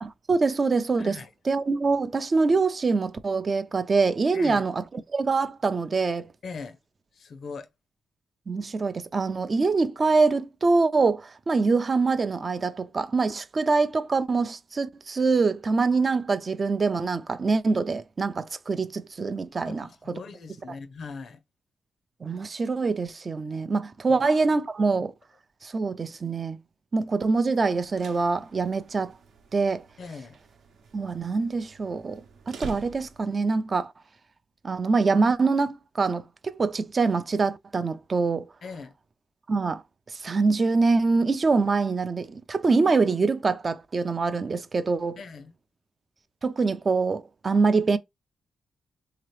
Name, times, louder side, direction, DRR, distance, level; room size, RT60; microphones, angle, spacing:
voice 1, 0.0-6.3 8.5-20.1 22.2-25.1 25.6-26.6 26.9-29.1 29.5-29.8 30.9-32.2 32.5-33.9 34.6-36.2 36.5-38.4 39.5-39.8 40.1-45.2 46.4-48.0, right 4 dB, 40° right, 0.4 m, -24 dB
voice 2, 1.0-1.3 4.3-4.6 6.4-6.8 7.1-7.7 19.6-21.4 24.1-24.2 30.0-30.4 38.6-39.0 45.2-45.5, left 4 dB, 60° left, 0.6 m, -40 dB
sound 1, 27.7-33.5, right 4 dB, 75° right, 0.8 m, -46 dB
3.7 x 2.9 x 3.1 m
cardioid pair, 90°, 0 cm